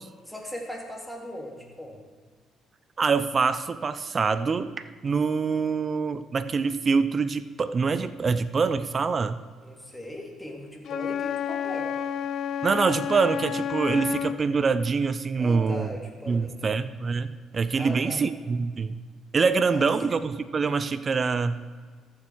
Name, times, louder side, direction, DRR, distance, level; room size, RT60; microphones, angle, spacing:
voice 1, 0.3-2.0 9.6-12.0 15.4-16.7 17.8-18.2 19.7-19.9, left 1 dB, 5° left, -1 dB, 2.4 m, -38 dB
voice 2, 3.0-9.4 12.6-15.9 16.3-19.0 19.3-21.6, right 5 dB, 40° right, 14 dB, 0.5 m, -25 dB
Wind instrument woodwind instrument, 10.8-14.4, left 8 dB, 65° left, 0.4 m, -30 dB
14.0 x 7.3 x 4.6 m, 1.6 s
supercardioid pair, 70°, 0 cm